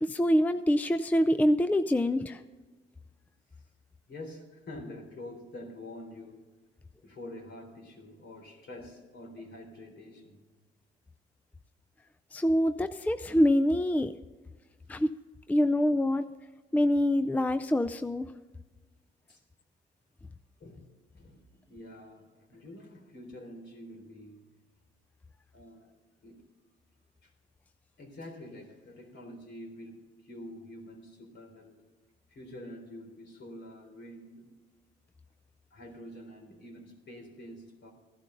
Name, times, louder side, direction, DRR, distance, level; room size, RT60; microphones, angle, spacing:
voice 1, 0.0-2.4 12.3-14.1 14.9-15.1 15.5-16.2 16.7-18.3, left 1 dB, 10° left, 12 dB, 0.4 m, -25 dB
voice 2, 4.1-6.5 7.0-10.4 19.3-19.4 20.6-20.9 21.1-24.5 25.5-26.0 26.2-26.4 27.2-27.3 28.0-31.8 32.3-34.5 35.7-37.9, left 1 dB, 60° left, 2 dB, 3.8 m, -47 dB
14.5 x 11.5 x 3.9 m, 1.3 s
cardioid pair, 90°, 20 cm